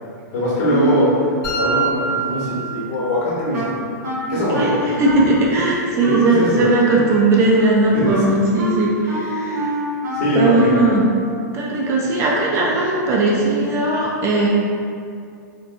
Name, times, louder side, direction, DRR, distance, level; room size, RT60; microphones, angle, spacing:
voice 1, 0.3-1.1 1.6-3.8 4.3-4.9 6.0-6.6 7.9-8.3 10.1-10.8, equal, 55° left, -7 dB, 1.1 m, -21 dB
sound 1, 1.4-3.4, right 4 dB, 35° left, 0.8 m, -25 dB
Wind instrument woodwind instrument, 3.5-11.1, right 1 dB, 65° right, 0.7 m, -26 dB
voice 2, 4.3-9.8 10.3-11.0 11.5-14.5, right 2 dB, 30° right, -3 dB, 0.4 m, -18 dB
2.9 x 2.1 x 2.6 m, 2.4 s
hypercardioid pair, 130°, 10 cm